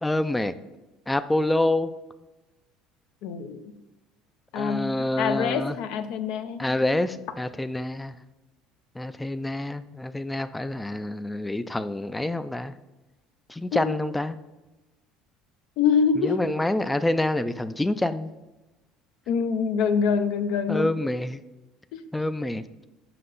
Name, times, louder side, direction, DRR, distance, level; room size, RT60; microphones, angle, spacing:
voice 1, 0.0-0.5 1.1-1.9 4.6-5.8 6.6-8.1 9.0-12.8 13.5-14.4 16.2-18.3 20.7-21.4 22.1-22.6, left 1 dB, 10° left, 12 dB, 0.3 m, -27 dB
voice 2, 3.2-3.6 4.5-4.9 5.2-6.6 13.7-14.0 15.8-16.4 19.3-21.0 21.9-22.0, left 6 dB, 75° left, 9 dB, 0.5 m, -25 dB
5.8 x 5.4 x 3.8 m, 1.1 s
supercardioid pair, 95°, 0 cm